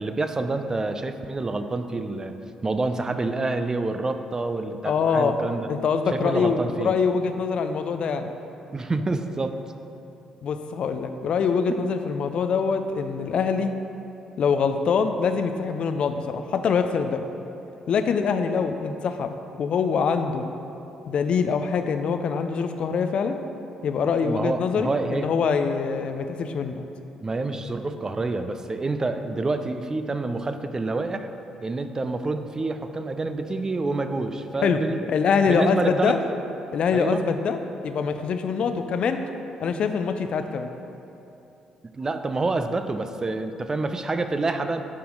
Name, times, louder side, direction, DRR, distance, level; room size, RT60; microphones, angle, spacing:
voice 1, 0.0-2.3 2.6-5.7 6.2-6.9 8.7-9.5 24.2-25.3 27.2-31.3 31.6-35.1 35.5-36.2 36.9-37.2 41.9-44.8, right 3 dB, 30° right, 8 dB, 0.5 m, -27 dB
voice 2, 4.8-5.3 5.7-8.3 10.4-13.7 14.4-17.2 17.9-20.4 21.1-23.4 23.8-26.8 34.6-34.8 35.1-36.2 36.7-39.2 39.6-40.7, left 6 dB, 55° left, 8 dB, 0.4 m, -24 dB
11.0 x 4.2 x 3.8 m, 2.8 s
hypercardioid pair, 45°, 2 cm